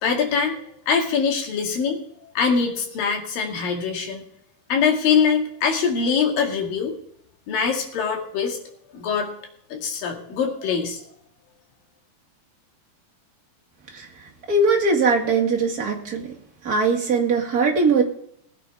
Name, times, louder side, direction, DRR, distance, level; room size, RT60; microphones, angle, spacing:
voice 1, 0.0-2.0 2.4-4.3 4.7-7.0 7.5-8.6 8.9-9.3 9.7-11.0, left 6 dB, 80° left, 1 dB, 3.8 m, -23 dB
voice 2, 14.5-16.3 16.6-18.0, right 4 dB, 35° right, 0 dB, 1.8 m, -20 dB
19.5 x 9.1 x 3.5 m, 0.69 s
omnidirectional pair, 4.0 m